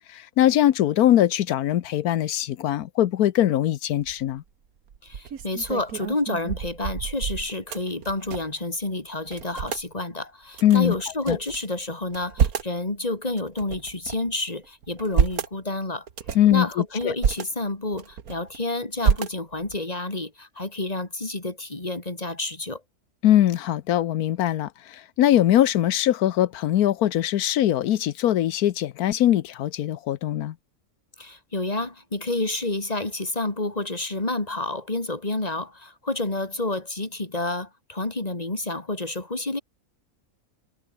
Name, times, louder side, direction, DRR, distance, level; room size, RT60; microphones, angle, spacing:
voice 1, 0.0-4.4 10.6-10.9 11.3-11.4 16.3-17.1 23.2-30.5, left 12 dB, 85° left, 1.3 m, -21 dB
sound 1, 4.0-4.4 4.9-8.6 8.9-9.0 9.3-9.9 10.5-11.6 12.0-12.8 13.4-14.3 14.8-15.5 16.1-16.5 17.0-17.4 17.9-18.6 19.0-19.8, right 7 dB, 80° right, 1.9 m, -28 dB
voice 2, 5.0-16.1 16.5-22.8 31.2-39.6, left 2 dB, 25° left, 3.1 m, -29 dB
omnidirectional pair, 1.5 m